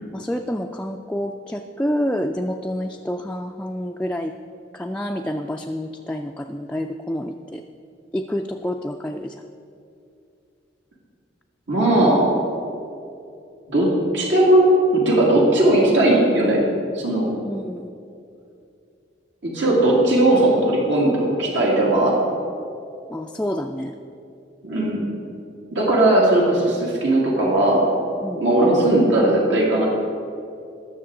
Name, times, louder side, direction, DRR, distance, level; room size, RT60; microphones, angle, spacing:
voice 1, 0.1-4.3 4.7-7.6 8.1-9.4 17.4-17.9 23.1-24.0 28.2-28.5, equal, 5° left, 2 dB, 0.3 m, -28 dB
voice 2, 11.7-12.3 13.7-16.6 16.9-17.3 19.4-22.2 24.6-25.0 25.7-27.9 28.4-29.9, right 1 dB, 80° right, -4 dB, 2.3 m, -18 dB
20.0 x 6.7 x 3.8 m, 2.5 s
head